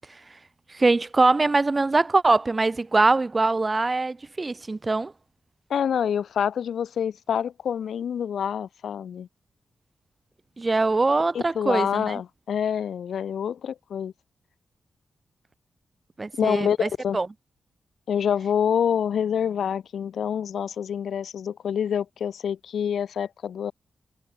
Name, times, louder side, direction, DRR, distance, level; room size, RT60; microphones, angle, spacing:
voice 1, 0.7-5.1 10.6-12.2 16.2-17.3, right 3 dB, 30° right, 0.9 m, -22 dB
voice 2, 5.7-9.3 11.3-14.1 16.4-17.2 18.1-23.7, left 8 dB, 80° left, 0.8 m, -27 dB
cardioid pair, 65°, 0 cm